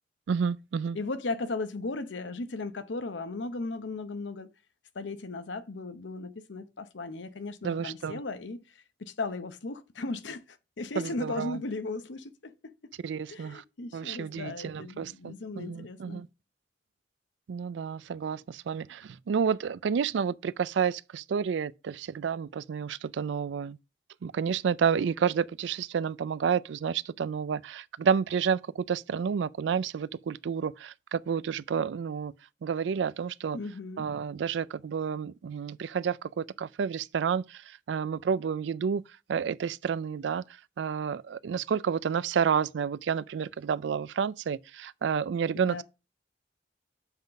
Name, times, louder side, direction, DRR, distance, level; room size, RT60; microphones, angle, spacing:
voice 1, 0.3-1.0 7.6-8.2 11.0-11.6 13.0-13.6 13.9-16.3 17.5-23.8 24.2-32.3 32.6-33.6 34.0-37.6 37.9-39.0 39.3-40.4 40.8-45.8, right 7 dB, 80° right, 0.4 m, -30 dB
voice 2, 0.9-4.5 4.9-12.9 13.3-16.2 33.5-34.1 45.5-45.8, left 3 dB, 85° left, 0.8 m, -36 dB
7.1 x 3.9 x 5.3 m
head